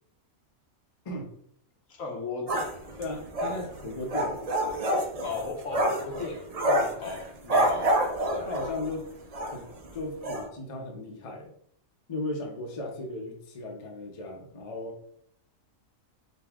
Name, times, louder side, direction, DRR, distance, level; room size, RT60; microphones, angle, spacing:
voice 1, 1.9-2.8 3.5-3.7 5.2-6.5 7.0-8.0, left 4 dB, 75° left, 1 dB, 1.3 m, -36 dB
sound 1, 2.5-8.9 9.3-9.6 9.8-9.9 10.2-10.5, right 1 dB, 55° right, 0.4 m, -27 dB
voice 2, 3.0-4.4 6.6-7.0 8.4-9.1 9.5-11.5 12.1-15.0, left 2 dB, 35° left, 1 dB, 0.6 m, -36 dB
5.3 x 2.2 x 3.5 m, 0.68 s
omnidirectional pair, 1.4 m